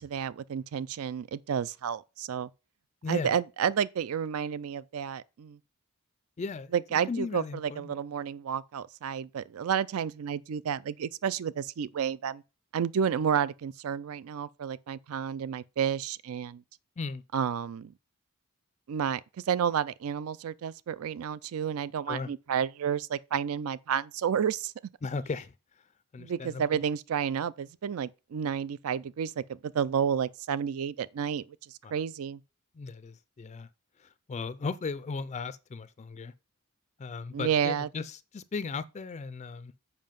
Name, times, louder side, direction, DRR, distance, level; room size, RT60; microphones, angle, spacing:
voice 1, 0.0-2.5 3.1-5.6 6.7-12.4 12.7-16.6 17.3-17.9 18.9-19.2 19.5-24.7 26.2-31.4 31.9-32.4 37.3-37.9, right 8 dB, 70° right, 0.4 m, -31 dB
voice 2, 3.0-3.3 6.4-7.9 17.0-17.2 22.1-22.3 25.0-25.9 26.1-26.8 31.8-31.9 32.7-33.7 34.0-36.3 37.0-39.7, left 4 dB, 30° left, 0.3 m, -37 dB
7.4 x 5.6 x 5.2 m
head